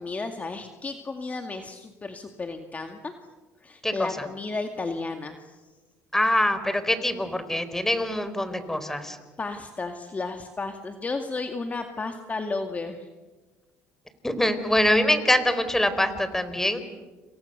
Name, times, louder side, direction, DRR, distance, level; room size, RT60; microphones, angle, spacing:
voice 1, 0.0-3.1 3.6-5.6 9.4-13.1, left 3 dB, 25° left, 5 dB, 2.2 m, -33 dB
voice 2, 3.8-4.2 6.1-9.2 14.2-16.8, left 1 dB, 5° left, 11 dB, 4.2 m, -24 dB
29.0 x 28.0 x 6.9 m, 1.3 s
supercardioid pair, 85°, 6 cm